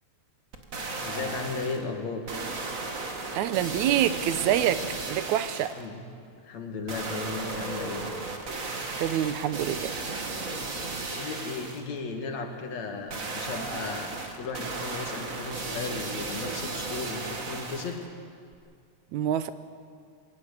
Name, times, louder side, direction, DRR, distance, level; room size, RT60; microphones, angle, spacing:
sound 1, 0.5-1.8 2.3-5.9 6.9-11.9 13.1-18.1 18.5-18.6, right 3 dB, 30° right, 1.8 m, -35 dB
voice 1, 1.0-2.2 5.7-6.0 6.4-8.0 11.1-14.1 14.4-18.0, left 4 dB, 70° left, 4 dB, 3.1 m, -35 dB
voice 2, 3.3-5.8 9.0-9.9 19.1-19.5, right 11 dB, 85° right, 12 dB, 2.2 m, -26 dB
21.0 x 19.0 x 8.2 m, 2.3 s
omnidirectional pair, 3.3 m